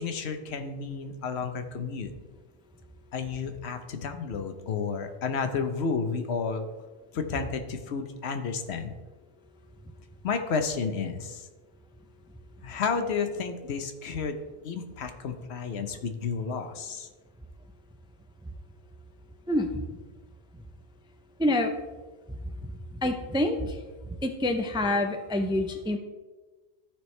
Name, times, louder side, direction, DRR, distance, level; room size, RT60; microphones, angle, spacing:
voice 1, 0.0-2.1 3.1-6.7 7.1-9.0 10.2-11.4 12.6-14.4 14.6-17.1, left 5 dB, 80° left, 7 dB, 1.0 m, -31 dB
voice 2, 19.5-19.8 21.4-21.7 22.4-22.7 23.0-23.8 24.2-26.0, left 1 dB, 10° right, 5 dB, 0.3 m, -27 dB
13.5 x 4.6 x 3.2 m, 1.3 s
omnidirectional pair, 1.1 m